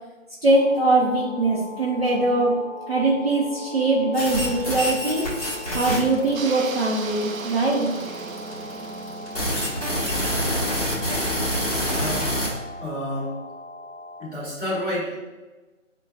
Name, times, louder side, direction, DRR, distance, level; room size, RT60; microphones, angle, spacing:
voice 1, 0.4-2.6 2.9-5.3 5.7-7.9, right 2 dB, 50° right, -4 dB, 0.7 m, -21 dB
sound 1, 0.5-14.3, left 2 dB, 55° left, 0.5 m, -39 dB
sound 2, 4.1-12.5, equal, 30° left, 1.1 m, -26 dB
sound 3, 6.3-11.6, right 4 dB, 90° right, 0.5 m, -37 dB
voice 2, 11.9-12.2 12.8-13.3 14.2-15.1, left 1 dB, 5° left, -18 dB, 1.1 m, -29 dB
5.5 x 2.2 x 2.4 m, 1.2 s
figure-of-eight pair, 155°, 40 cm